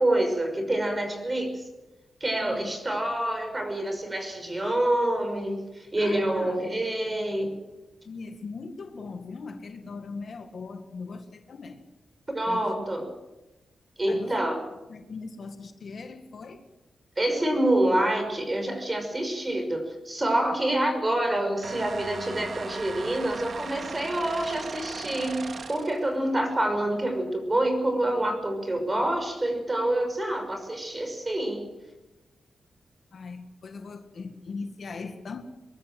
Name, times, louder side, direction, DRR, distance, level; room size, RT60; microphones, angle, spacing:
voice 1, 0.0-1.6 2.2-7.5 12.3-13.1 14.0-14.6 17.2-31.7, right 1 dB, 20° right, 5 dB, 5.9 m, -27 dB
voice 2, 6.0-6.6 6.9-7.2 8.1-11.8 12.5-12.7 14.1-14.4 14.9-16.6 33.1-35.4, left 4 dB, 55° left, 7 dB, 1.9 m, -40 dB
sound 1, 21.6-26.0, right 4 dB, 50° right, 2.0 m, -38 dB
23.0 x 21.5 x 7.7 m, 1.1 s
wide cardioid pair, 120°, 0 cm